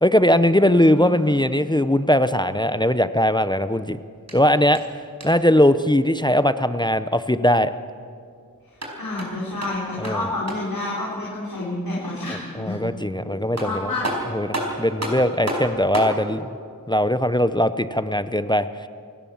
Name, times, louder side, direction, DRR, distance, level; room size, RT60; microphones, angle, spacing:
voice 1, 0.0-4.0 4.3-4.8 5.2-7.7 10.0-10.3 12.6-13.9 14.3-16.5 16.9-18.9, equal, 15° left, 12 dB, 0.7 m, -20 dB
voice 2, 0.5-1.3 9.0-12.8 13.6-14.0, left 2 dB, 90° left, -7 dB, 4.4 m, -29 dB
sound 1, 4.2-5.6 8.6-10.8 13.1-13.2 13.6-16.2, right 1 dB, 50° right, 4.9 m, -31 dB
28.0 x 16.5 x 7.2 m, 2.3 s
wide cardioid pair, 60°, 34 cm